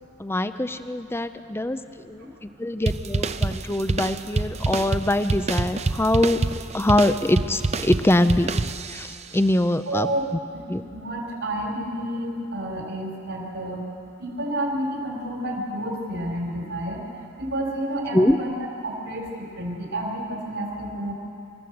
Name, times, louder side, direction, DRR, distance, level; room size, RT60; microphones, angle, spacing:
voice 1, 0.2-6.5 6.7-8.5 8.9-10.4 10.7-10.8 18.1-18.4, left 1 dB, 10° left, 11 dB, 0.5 m, -23 dB
sound 1, 2.9-9.2, right 3 dB, 35° right, 0.6 m, -27 dB
voice 2, 9.9-13.9 14.2-17.0 17.4-21.1, right 1 dB, 75° right, -1 dB, 4.2 m, -30 dB
25.5 x 13.5 x 7.9 m, 2.6 s
head